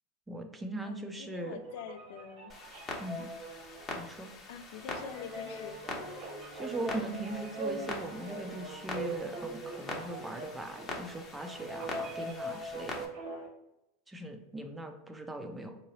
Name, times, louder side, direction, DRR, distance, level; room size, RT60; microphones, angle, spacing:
voice 1, 0.3-1.6 3.0-3.3 3.9-4.3 6.5-12.9 14.1-15.8, right 1 dB, 10° right, 6 dB, 0.5 m, -40 dB
voice 2, 0.8-2.5 4.5-5.8, left 8 dB, 70° left, 10 dB, 0.4 m, -45 dB
sound 1, 1.4-13.5, right 1 dB, 55° right, 1.1 m, -42 dB
Clock, 2.5-13.1, left 3 dB, 25° left, 0.8 m, -44 dB
Bowed string instrument, 4.8-10.5, right 1 dB, 80° right, 0.7 m, -54 dB
3.7 x 2.9 x 3.0 m, 0.92 s
supercardioid pair, 125°, 0 cm